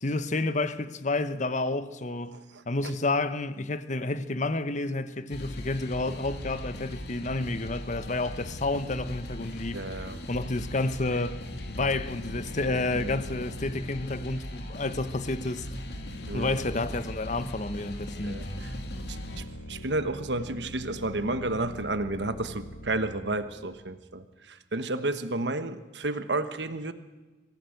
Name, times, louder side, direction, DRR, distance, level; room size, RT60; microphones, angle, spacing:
voice 1, 0.0-2.4 2.7-11.4 11.7-15.7 16.3-18.4, left 2 dB, 40° left, 1.1 m, -30 dB
voice 2, 2.3-2.6 9.7-10.2 12.9-13.2 16.2-16.6 18.2-18.7 19.1-26.9, right 2 dB, 70° right, 1.3 m, -32 dB
sound 1, 5.3-19.4, equal, 65° left, 2.4 m, -39 dB
sound 2, 11.5-24.0, left 1 dB, 80° left, 2.4 m, -44 dB
25.5 x 15.5 x 7.9 m
head